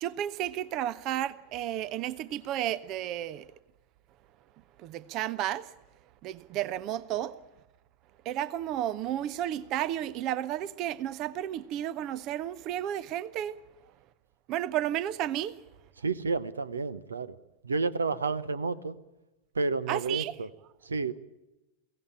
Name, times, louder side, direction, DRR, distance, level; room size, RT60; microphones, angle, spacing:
voice 1, 0.0-3.5 4.8-5.7 6.2-7.4 8.2-13.6 14.5-15.6 19.9-20.3, right 12 dB, 40° right, 0.7 m, -32 dB
voice 2, 16.0-17.3 17.6-19.0 19.5-20.5 20.8-21.2, right 4 dB, 75° right, 0.9 m, -30 dB
22.5 x 17.0 x 8.7 m
figure-of-eight pair, 90°, 0 cm